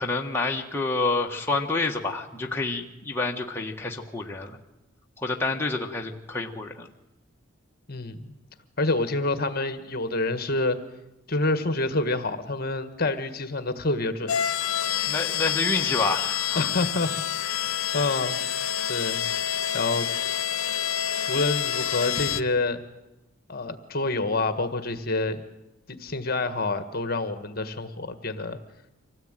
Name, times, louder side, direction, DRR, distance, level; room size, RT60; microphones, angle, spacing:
voice 1, 0.0-4.6 5.2-6.9 15.1-16.7 18.0-18.1, left 3 dB, 10° left, 0 dB, 1.4 m, -28 dB
voice 2, 7.9-8.3 8.8-10.8 11.3-14.3 16.5-18.4 18.9-19.2 19.7-20.1 21.3-22.8 23.5-25.4 25.9-28.6, left 2 dB, 45° left, 10 dB, 1.6 m, -27 dB
sound 1, 14.3-22.4, left 10 dB, 80° left, 0.8 m, -28 dB
25.5 x 17.5 x 9.1 m, 0.95 s
head